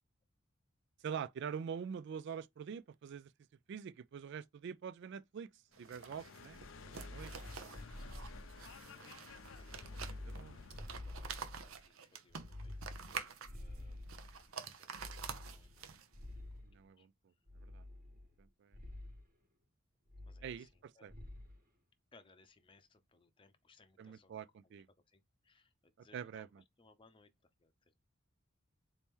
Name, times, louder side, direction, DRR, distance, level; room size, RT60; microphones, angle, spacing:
voice 1, 1.0-3.3 3.7-5.5 5.8-7.3 7.6-7.7 10.3-10.6 16.6-17.1 17.6-17.8 18.4-18.8 20.4-21.1 24.0-24.9 26.1-26.6, right 7 dB, 55° right, 0.3 m, -45 dB
sound 1, 5.7-10.9, left 5 dB, 65° left, 0.6 m, -55 dB
sound 2, 5.7-16.2, right 6 dB, 80° right, 0.7 m, -48 dB
sound 3, 6.5-8.9 9.4-11.8 12.3-14.5 14.9-16.8 17.5-18.4 18.7-19.2 20.1-20.8 21.1-21.6, left 1 dB, 40° right, 1.3 m, -50 dB
voice 2, 9.3-10.7 11.0-14.1 14.4-15.9 16.5-16.6 17.0-17.1 20.3-21.1 22.1-24.3 24.6-24.7 25.1-27.3 27.6-27.9, left 3 dB, 25° left, 0.6 m, -67 dB
4.1 x 2.9 x 3.6 m
head